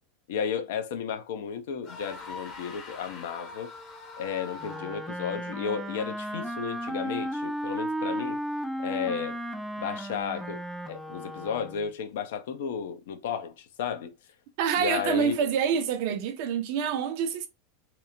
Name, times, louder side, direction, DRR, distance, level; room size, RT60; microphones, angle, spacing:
voice 1, 0.3-3.7 4.2-8.4 8.8-9.4 9.8-14.1 14.8-15.3, left 7 dB, 60° left, 0.4 m, -33 dB
sound 1, 1.8-5.2, left 3 dB, 40° left, 0.8 m, -43 dB
Wind instrument woodwind instrument, 4.6-11.9, right 1 dB, 5° right, 0.4 m, -34 dB
voice 2, 14.6-17.5, right 7 dB, 50° right, 0.6 m, -27 dB
2.9 x 2.0 x 2.5 m
figure-of-eight pair, 85°, 0 cm